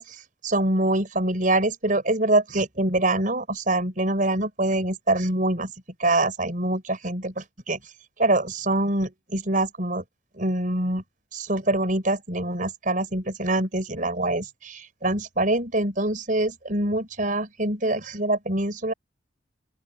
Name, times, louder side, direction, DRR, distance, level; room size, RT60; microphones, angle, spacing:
voice 1, 0.0-5.7 6.0-7.8 8.2-10.0 10.4-11.0 11.3-18.9, right 2 dB, 45° right, 5.4 m, -25 dB
open air
head